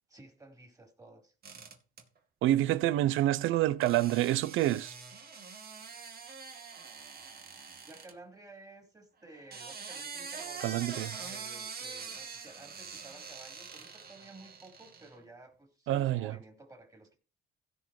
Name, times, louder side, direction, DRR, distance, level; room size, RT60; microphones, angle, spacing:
voice 1, 0.1-1.3 7.9-10.8 11.2-17.2, right 2 dB, 15° right, 4.4 m, -53 dB
sound 1, 1.4-2.0 3.8-8.1 9.3-15.1, right 5 dB, 50° right, 2.6 m, -44 dB
voice 2, 2.4-4.9 10.6-11.1 15.9-16.3, right 14 dB, 90° right, 0.7 m, -27 dB
16.0 x 5.4 x 4.7 m
cardioid pair, 90°, 20 cm